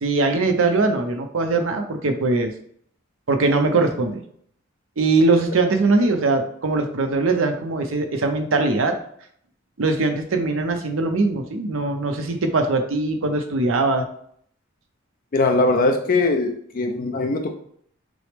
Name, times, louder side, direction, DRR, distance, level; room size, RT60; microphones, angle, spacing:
voice 1, 0.0-2.5 3.3-4.2 5.0-8.9 9.8-14.0, right 3 dB, 85° right, 5 dB, 0.7 m, -21 dB
voice 2, 15.3-17.5, left 3 dB, 45° left, 4 dB, 0.4 m, -21 dB
6.1 x 2.1 x 3.3 m, 0.65 s
head